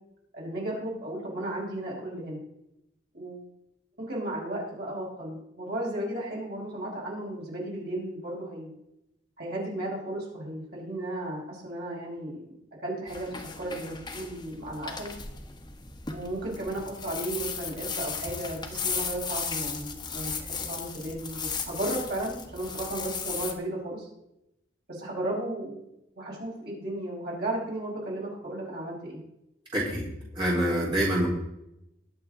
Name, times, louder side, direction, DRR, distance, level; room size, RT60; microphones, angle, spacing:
voice 1, 0.3-2.4 3.1-3.4 4.0-8.8 9.4-12.4 12.8-15.1 16.1-24.1 24.9-25.8 26.1-29.2, right 1 dB, 60° right, -4 dB, 5.7 m, -34 dB
sound 1, 13.1-23.5, left 5 dB, 25° left, 1.3 m, -36 dB
voice 2, 29.7-30.0 30.3-31.3, right 1 dB, 25° right, -6 dB, 4.2 m, -25 dB
22.0 x 7.6 x 3.9 m, 0.85 s
head